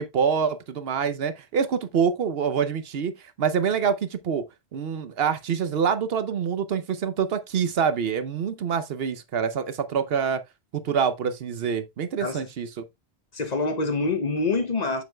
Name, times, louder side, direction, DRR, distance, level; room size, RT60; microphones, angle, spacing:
voice 1, 0.0-4.4 4.7-10.4 10.7-12.8, right 7 dB, 70° right, 0.9 m, -26 dB
voice 2, 13.3-15.0, left 3 dB, 45° left, 0.8 m, -26 dB
7.5 x 7.1 x 2.2 m
omnidirectional pair, 1.1 m